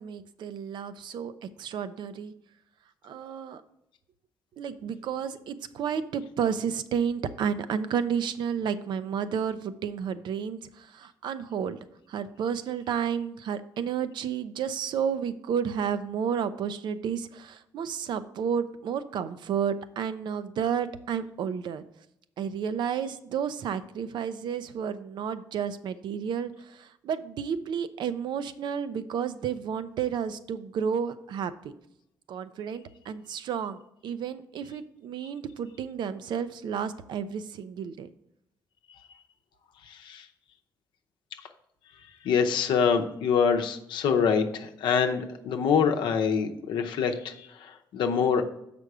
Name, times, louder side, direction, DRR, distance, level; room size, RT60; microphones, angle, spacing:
voice 1, 0.0-2.3 3.0-3.6 4.6-11.8 12.1-21.8 22.4-31.7 32.3-38.1, right 7 dB, 75° right, 12 dB, 0.5 m, -31 dB
voice 2, 39.9-40.2 42.2-48.4, left 6 dB, 90° left, 5 dB, 0.7 m, -25 dB
6.6 x 5.1 x 4.8 m, 0.78 s
cardioid pair, 95°, 8 cm